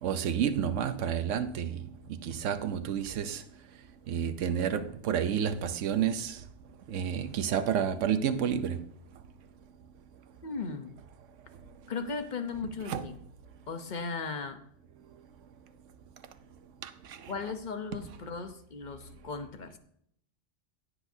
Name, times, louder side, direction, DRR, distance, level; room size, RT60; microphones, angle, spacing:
voice 1, 0.0-1.7 2.2-3.4 4.1-6.4 6.9-8.8 12.9-13.1 16.8-16.9, right 8 dB, 75° right, 1.1 m, -30 dB
voice 2, 10.4-11.0 11.9-13.1 13.7-14.6 17.3-19.7, left 4 dB, 40° left, 0.9 m, -37 dB
16.0 x 7.9 x 2.7 m
omnidirectional pair, 1.3 m